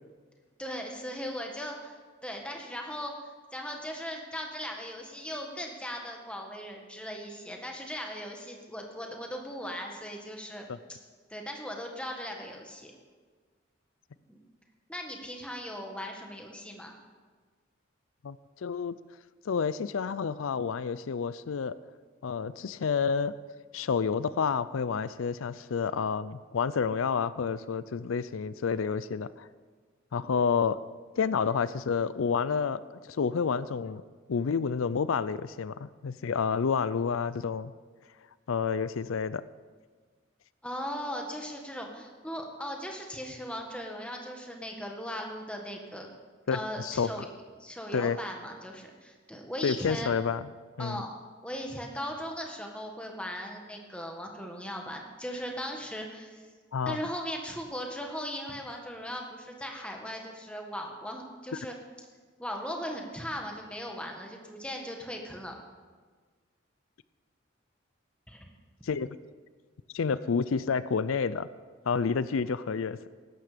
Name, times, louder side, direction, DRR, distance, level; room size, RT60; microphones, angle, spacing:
voice 1, 0.6-11.0 11.3-12.9 14.3-14.4 14.9-16.9 40.6-46.1 46.5-47.3 47.6-50.1 50.8-51.1 51.4-56.5 56.8-61.7 62.4-65.6 68.3-68.5, equal, 5° left, 1 dB, 1.6 m, -38 dB
voice 2, 18.2-18.9 19.5-21.8 22.2-23.3 23.7-29.5 30.1-30.8 31.2-34.0 34.3-37.7 38.5-39.4 46.5-47.1 47.9-48.2 49.6-50.5 50.8-51.0 56.7-57.0 68.8-69.2 69.9-71.5 71.9-73.1, left 6 dB, 90° left, 16 dB, 0.5 m, -29 dB
15.5 x 12.5 x 5.1 m, 1.5 s
head